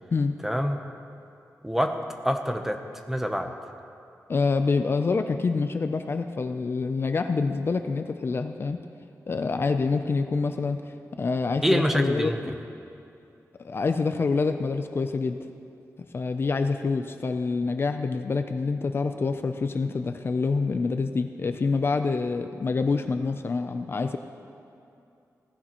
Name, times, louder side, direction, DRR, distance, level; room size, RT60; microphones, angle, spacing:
voice 1, 0.4-0.8 1.6-2.0 2.2-2.8 3.1-3.5 11.6-12.4, equal, 5° right, 5 dB, 0.7 m, -25 dB
voice 2, 4.3-8.8 9.3-12.5 13.6-15.4 16.1-24.2, left 4 dB, 40° left, 8 dB, 0.4 m, -26 dB
17.5 x 15.0 x 3.0 m, 2.6 s
wide cardioid pair, 180°, 6 cm